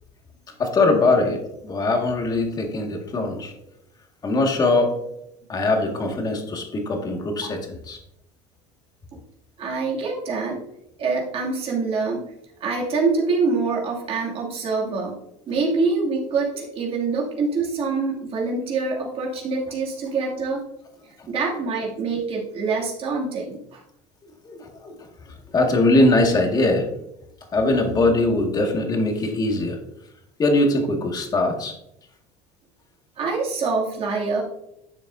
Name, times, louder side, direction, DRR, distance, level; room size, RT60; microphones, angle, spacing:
voice 1, 0.6-3.5 4.2-4.9 5.5-8.0 24.4-24.9 25.2-26.9 27.5-29.8 30.4-31.7, left 2 dB, 30° left, 2 dB, 2.0 m, -21 dB
voice 2, 9.6-10.6 11.0-12.3 12.6-20.6 21.3-23.8 33.2-34.4, right 4 dB, 45° right, -2 dB, 2.6 m, -25 dB
11.5 x 7.0 x 2.7 m, 0.81 s
cardioid pair, 125°, 14 cm